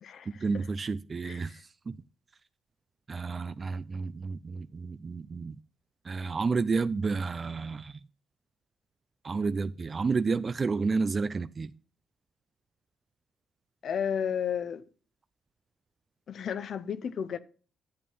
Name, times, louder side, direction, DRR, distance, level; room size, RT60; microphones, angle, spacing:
voice 1, 0.3-2.0 3.1-5.6 6.0-8.0 9.2-11.7, right 4 dB, 35° right, 0.4 m, -31 dB
voice 2, 13.8-14.8 16.3-17.4, left 8 dB, 60° left, 0.8 m, -32 dB
11.0 x 7.4 x 5.5 m
cardioid pair, 90°, 0 cm